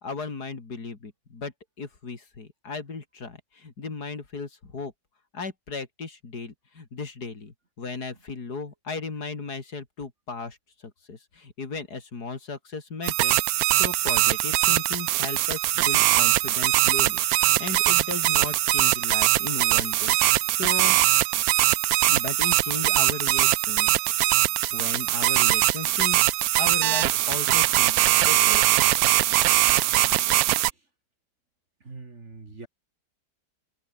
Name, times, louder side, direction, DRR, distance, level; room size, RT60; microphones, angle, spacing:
voice 1, 0.0-1.5 1.8-4.9 5.3-10.6 11.1-20.2 20.5-21.0 22.1-24.0 24.7-26.3 26.6-28.9, left 4 dB, 65° left, 3.6 m, -36 dB
sound 1, 13.0-30.7, right 15 dB, 70° right, 0.9 m, -21 dB
voice 2, 31.8-32.7, right 3 dB, 40° right, 2.8 m, -43 dB
omnidirectional pair, 1.8 m